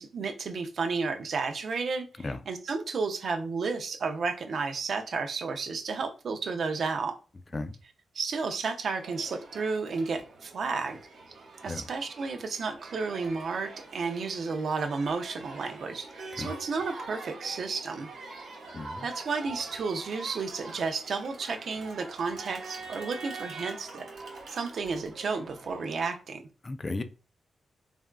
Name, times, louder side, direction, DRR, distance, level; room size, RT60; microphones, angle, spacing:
voice 1, 0.0-7.2 8.1-11.0 11.6-18.1 19.0-24.1 24.5-26.4, right 4 dB, 70° right, 0.5 m, -32 dB
Crowd, 9.0-26.1, right 3 dB, 90° right, 1.0 m, -44 dB
voice 2, 18.7-19.1 26.6-27.0, left 2 dB, 35° left, 0.3 m, -34 dB
3.4 x 2.3 x 2.2 m
cardioid pair, 70°, 0 cm